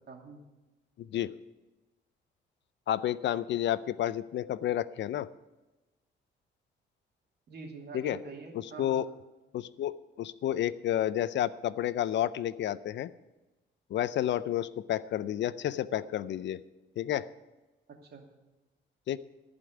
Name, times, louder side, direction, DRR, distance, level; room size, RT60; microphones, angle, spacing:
voice 1, 0.1-0.4 7.5-9.0 17.9-18.2, right 4 dB, 55° right, 2 dB, 2.5 m, -45 dB
voice 2, 1.0-1.3 2.9-5.3 7.9-8.2 8.8-9.1 9.5-13.1 13.9-16.6 17.0-17.3 19.1-19.2, left 11 dB, 65° left, 17 dB, 0.5 m, -30 dB
14.5 x 5.2 x 9.2 m, 1.1 s
cardioid pair, 90°, 20 cm